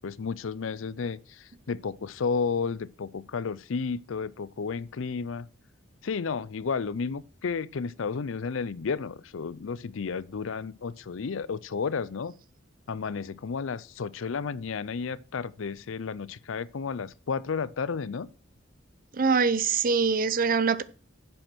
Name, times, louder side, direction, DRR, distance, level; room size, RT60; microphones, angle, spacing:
voice 1, 0.0-5.5 6.0-12.3 12.9-18.3, left 5 dB, 85° left, 0.5 m, -32 dB
voice 2, 19.2-20.8, right 5 dB, 45° right, 0.6 m, -23 dB
8.7 x 7.7 x 6.1 m
head